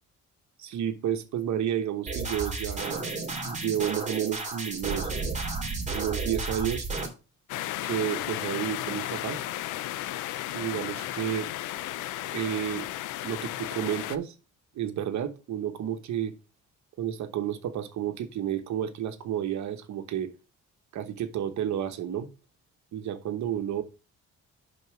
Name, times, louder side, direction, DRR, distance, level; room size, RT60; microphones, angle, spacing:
voice 1, 0.6-3.0 3.4-5.1 5.9-6.9 7.8-9.4 10.5-11.5 12.3-12.9 13.2-14.3 14.7-16.3 17.0-20.3 20.9-22.3 22.9-23.8, right 10 dB, 70° right, 1.1 m, -31 dB
sound 1, 2.1-7.1, right 3 dB, 25° right, 2.9 m, -32 dB
sound 2, 7.5-14.2, left 14 dB, 85° left, 0.5 m, -34 dB
5.4 x 4.1 x 6.1 m
cardioid pair, 90°, 30 cm